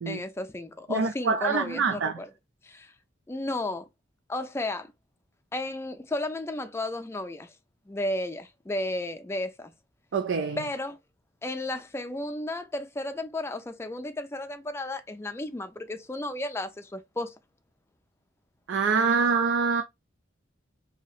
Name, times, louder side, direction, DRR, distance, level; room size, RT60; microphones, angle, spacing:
voice 1, 0.1-2.3 2.6-2.9 3.3-3.9 4.3-4.9 5.5-7.5 7.9-9.7 10.6-11.0 11.4-17.3, left 2 dB, 15° left, 0.4 m, -33 dB
voice 2, 0.9-2.2 10.1-10.6 18.7-19.8, right 5 dB, 70° right, 0.4 m, -25 dB
4.1 x 2.8 x 2.4 m
head